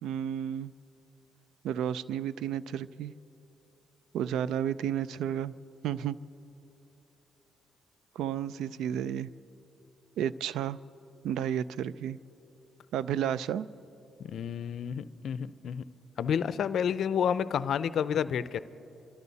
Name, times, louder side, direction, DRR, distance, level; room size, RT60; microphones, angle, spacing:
voice 1, 0.0-0.7 1.6-3.1 4.1-5.5 5.8-6.2 8.2-9.3 10.2-10.8 11.2-12.2 12.9-13.7, right 9 dB, 80° right, 17 dB, 0.4 m, -32 dB
voice 2, 14.2-15.8 16.2-18.6, left 8 dB, 65° left, 15 dB, 0.5 m, -30 dB
27.0 x 13.0 x 4.1 m, 3.0 s
cardioid pair, 90°, 0 cm